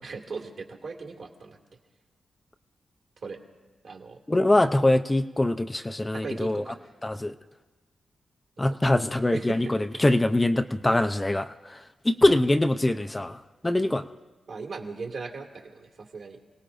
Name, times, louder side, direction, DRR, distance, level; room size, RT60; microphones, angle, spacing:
voice 1, 0.0-1.6 3.2-3.4 3.8-4.2 6.1-6.8 8.7-8.8 9.3-9.7 10.1-10.2 14.5-16.4, right 4 dB, 65° right, 1 dB, 2.1 m, -38 dB
voice 2, 4.3-6.6 7.0-7.3 8.6-11.8 12.0-14.0, left 1 dB, 15° left, 9 dB, 0.4 m, -23 dB
29.5 x 18.0 x 2.6 m, 1.2 s
wide cardioid pair, 105°, 0 cm